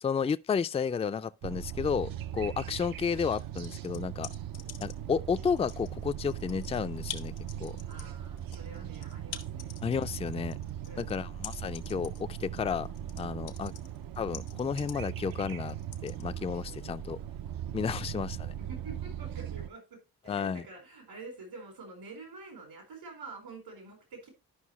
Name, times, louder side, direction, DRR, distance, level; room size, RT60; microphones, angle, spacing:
voice 1, 0.0-4.3 4.8-7.3 7.6-7.8 9.8-10.6 11.0-12.9 13.2-13.7 14.2-15.8 16.0-17.2 17.7-18.5 20.3-20.6, left 6 dB, 15° left, 0.4 m, -32 dB
sound 1, 1.4-19.7, right 10 dB, 65° right, 0.6 m, -39 dB
voice 2, 2.6-2.9 4.5-4.8 7.8-9.7 10.8-11.2 13.7-14.0 16.6-17.0 17.9-18.2 18.6-20.0 20.2-24.3, right 3 dB, 80° right, 4.2 m, -48 dB
sound 2, 3.2-5.1 5.5-16.2, left 9 dB, 80° left, 0.9 m, -46 dB
11.5 x 5.4 x 3.0 m
supercardioid pair, 50°, 38 cm